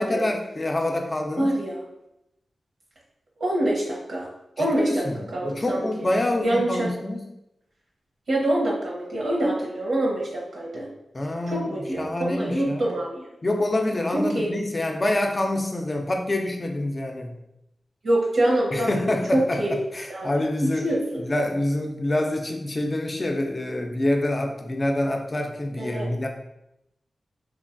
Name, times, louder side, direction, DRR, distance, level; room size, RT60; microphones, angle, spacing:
voice 1, 0.0-1.5 4.6-7.2 11.1-12.9 13.4-17.3 18.7-20.9 21.2-26.3, left 1 dB, 35° left, 3 dB, 0.4 m, -26 dB
voice 2, 1.4-1.8 3.4-4.3 4.6-5.0 5.3-6.1 6.4-6.9 8.3-10.8 11.5-13.3 14.1-14.5 18.0-19.0 19.3-19.7 20.1-20.3 20.6-21.2 25.8-26.1, right 1 dB, 85° right, -4 dB, 0.7 m, -25 dB
3.1 x 2.2 x 2.5 m, 0.85 s
wide cardioid pair, 80°, 0 cm